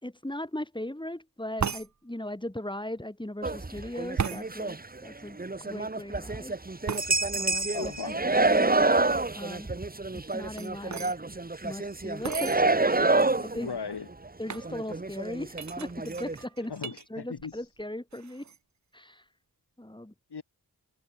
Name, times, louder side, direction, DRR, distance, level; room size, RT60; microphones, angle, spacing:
voice 1, 0.0-5.4 5.6-6.6 7.3-8.8 9.3-9.7 10.1-11.1 11.6-12.6 13.1-13.7 14.4-16.7 17.1-18.4 18.9-19.2 19.8-20.1, left 1 dB, 10° left, 4.1 m, -38 dB
sound 1, 1.6-1.9 4.2-4.5 6.9-7.1 10.2-11.2 12.2-12.6 13.3-13.4 13.6-13.9 14.5-14.7 15.6-17.0 17.4-17.8 18.1-18.6, right 7 dB, 45° right, 0.7 m, -35 dB
sound 2, 3.4-5.0 5.4-13.9 14.2-14.3 14.6-16.4, right 3 dB, 25° right, 1.1 m, -28 dB
voice 2, 7.7-8.2 13.5-14.1 16.7-17.5 20.3-20.4, left 5 dB, 85° left, 2.4 m, -37 dB
cardioid pair, 45°, 38 cm